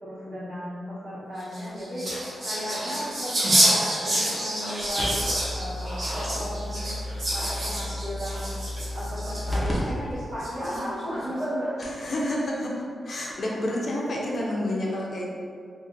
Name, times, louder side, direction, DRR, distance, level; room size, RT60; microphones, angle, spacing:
voice 1, 0.0-5.2 5.5-6.9 7.3-12.0, equal, 70° right, -10 dB, 1.3 m, -35 dB
sound 1, 1.4-9.8 10.4-11.0, right 1 dB, 50° right, 1.0 m, -28 dB
sound 2, 5.0-9.7 10.1-10.2 10.8-10.9 11.5-11.6 11.8-12.1 13.3-13.4, left 1 dB, 5° left, 0.6 m, -33 dB
voice 2, 11.8-15.3, left 1 dB, 45° left, -3 dB, 0.5 m, -29 dB
2.5 x 2.4 x 3.9 m, 2.2 s
wide cardioid pair, 160°, 0 cm